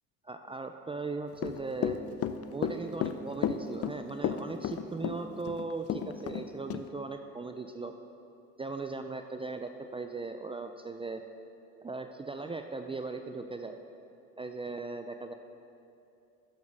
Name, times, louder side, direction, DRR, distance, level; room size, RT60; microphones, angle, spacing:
voice 1, 0.2-2.0 2.5-7.9 8.6-11.2 11.8-13.8 14.4-15.3, right 3 dB, 15° right, 6 dB, 0.4 m, -38 dB
Run / Walk footsteps, 1.3-6.4 6.7-6.8, left 9 dB, 50° left, 0.6 m, -32 dB
11.5 x 7.0 x 4.8 m, 2.7 s
cardioid pair, 85°, 32 cm